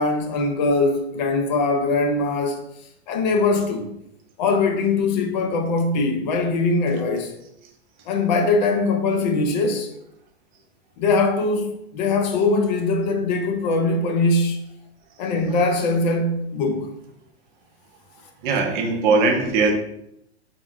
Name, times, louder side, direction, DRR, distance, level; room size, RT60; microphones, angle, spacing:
voice 1, 0.0-2.6 3.1-3.9 4.4-7.3 8.1-9.9 11.0-14.6 15.2-16.9, left 3 dB, 40° left, 0.4 m, -21 dB
voice 2, 18.4-19.7, right 4 dB, 45° right, 0.6 m, -20 dB
3.5 x 2.1 x 2.3 m
hypercardioid pair, 100°, 33 cm